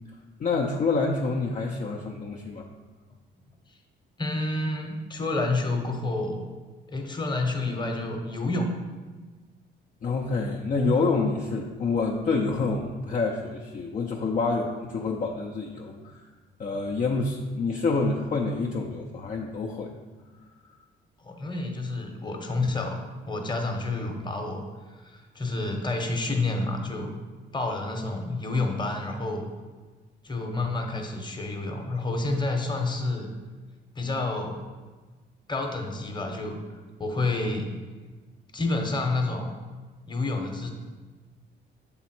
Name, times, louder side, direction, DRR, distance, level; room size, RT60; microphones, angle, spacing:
voice 1, 0.4-2.6 10.0-16.3 16.6-19.9, left 3 dB, 40° left, 0 dB, 0.6 m, -27 dB
voice 2, 4.2-6.5 6.9-8.7 21.2-23.0 23.3-24.6 25.0-27.2 27.5-29.4 30.2-33.3 33.9-34.6 35.5-36.6 37.0-37.7 38.5-39.5 40.1-40.7, left 2 dB, 25° left, 3 dB, 1.0 m, -29 dB
7.0 x 3.6 x 4.4 m, 1.4 s
cardioid pair, 90°, 20 cm